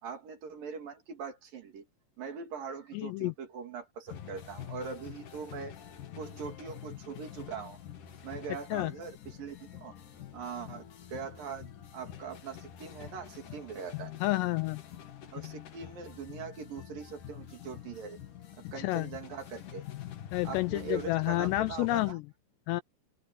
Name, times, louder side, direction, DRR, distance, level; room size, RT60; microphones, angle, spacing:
voice 1, 0.0-1.9 2.2-5.8 6.1-7.8 8.2-9.9 10.3-14.1 15.3-18.2 18.6-19.8 20.4-22.2, right 6 dB, 55° right, 3.9 m, -42 dB
voice 2, 2.9-3.3 8.7-8.9 14.2-14.8 18.8-19.1 20.3-22.2 22.7-22.8, left 18 dB, 80° left, 2.5 m, -30 dB
sound 1, 4.1-22.1, left 10 dB, 50° left, 3.1 m, -46 dB
open air
omnidirectional pair, 5.3 m